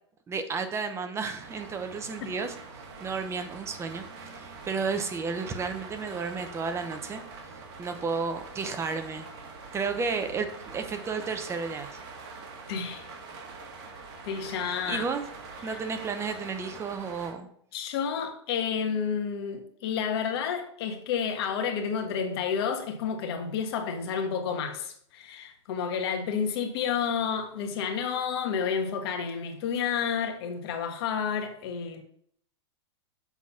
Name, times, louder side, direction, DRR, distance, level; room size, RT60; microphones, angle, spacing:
voice 1, 0.3-2.6 3.0-4.0 4.3-7.2 7.8-9.3 9.7-12.0 14.7-15.2 15.6-17.5, right 5 dB, 20° right, 0.8 m, -32 dB
sound 1, 1.4-17.3, right 4 dB, 50° right, 1.8 m, -44 dB
voice 2, 12.7-13.0 14.2-15.0 15.6-15.8 17.7-32.0, left 7 dB, 60° left, 1.5 m, -30 dB
7.2 x 4.1 x 5.7 m
hypercardioid pair, 125°, 15 cm